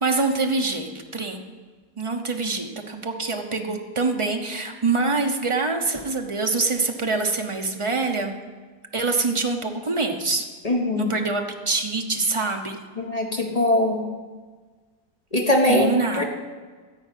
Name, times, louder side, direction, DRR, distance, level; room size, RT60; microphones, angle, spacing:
voice 1, 0.0-1.4 2.0-8.3 8.9-10.5 11.0-12.8 15.7-16.2, right 3 dB, 30° right, 4 dB, 0.6 m, -25 dB
voice 2, 10.6-11.1 13.0-14.0 15.3-15.9 16.2-16.3, left 1 dB, 25° left, 1 dB, 1.2 m, -21 dB
14.0 x 4.9 x 9.1 m, 1.4 s
omnidirectional pair, 1.8 m